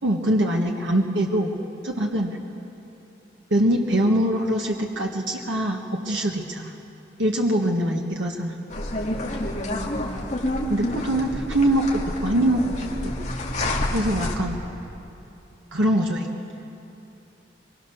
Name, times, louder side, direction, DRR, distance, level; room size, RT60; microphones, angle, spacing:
voice 1, 0.0-1.5 1.8-2.4 3.5-6.7 7.2-8.5 10.7-12.6 13.0-13.1 13.9-14.6 15.7-16.3, right 1 dB, 90° right, 0 dB, 1.5 m, -23 dB
sound 1, 8.7-14.3, left 1 dB, 40° left, 2.0 m, -28 dB
23.0 x 21.5 x 6.5 m, 2.9 s
head